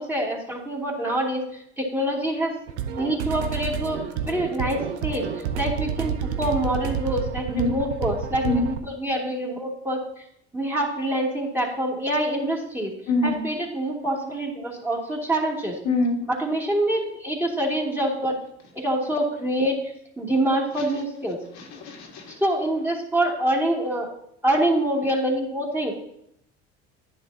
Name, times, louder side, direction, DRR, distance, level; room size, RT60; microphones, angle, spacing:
voice 1, 0.0-2.5 3.0-6.1 6.4-10.2 10.5-12.9 13.2-15.8 16.3-18.4 18.7-21.4 22.3-24.1 24.4-25.9, right 1 dB, 5° right, -3 dB, 2.7 m, -26 dB
sound 1, 2.7-8.8, right 7 dB, 85° right, 0.8 m, -29 dB
voice 2, 13.1-13.4 15.9-16.2 21.8-22.2, left 2 dB, 60° left, 0 dB, 1.8 m, -23 dB
10.5 x 9.8 x 2.8 m, 0.76 s
hypercardioid pair, 80°, 32 cm